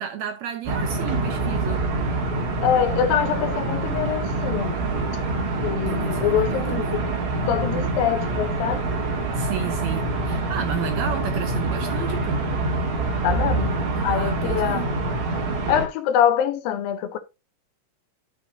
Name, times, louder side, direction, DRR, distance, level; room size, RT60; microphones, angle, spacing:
voice 1, 0.0-1.9 5.8-7.0 7.7-7.9 9.3-12.4 13.9-14.9, right 9 dB, 70° right, 1.8 m, -32 dB
sound 1, 0.6-15.9, right 2 dB, 45° right, 2.2 m, -25 dB
voice 2, 2.6-4.8 5.6-7.1 7.5-8.9 13.2-13.8 14.0-14.9 15.7-17.2, left 9 dB, 85° left, 2.7 m, -24 dB
11.5 x 6.5 x 2.7 m
omnidirectional pair, 4.0 m